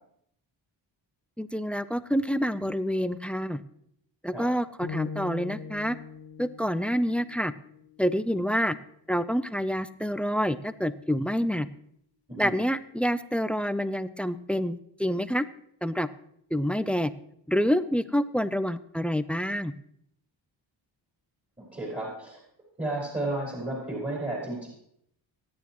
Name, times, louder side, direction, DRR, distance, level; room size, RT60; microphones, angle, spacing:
voice 1, 1.4-3.6 4.2-6.0 6.4-7.5 8.0-8.7 9.1-11.7 12.4-15.5 15.8-16.1 16.5-17.1 17.5-19.7, equal, 5° left, 14 dB, 0.5 m, -27 dB
sound 1, 4.8-8.9, left 5 dB, 50° left, 1.9 m, -42 dB
voice 2, 21.6-22.4 22.8-24.7, right 2 dB, 15° right, -5 dB, 4.7 m, -32 dB
25.0 x 9.5 x 3.0 m, 0.72 s
cardioid pair, 100°, 46 cm